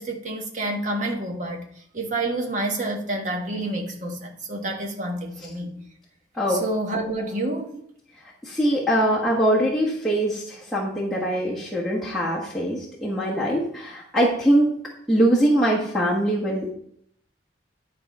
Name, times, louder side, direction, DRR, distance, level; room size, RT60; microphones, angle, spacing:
voice 1, 0.0-1.6 1.9-5.8 6.5-7.8, right 2 dB, 40° right, 1 dB, 1.4 m, -28 dB
voice 2, 8.4-14.7 15.1-16.7, right 1 dB, ahead, -6 dB, 1.4 m, -22 dB
10.5 x 4.9 x 4.2 m, 0.69 s
head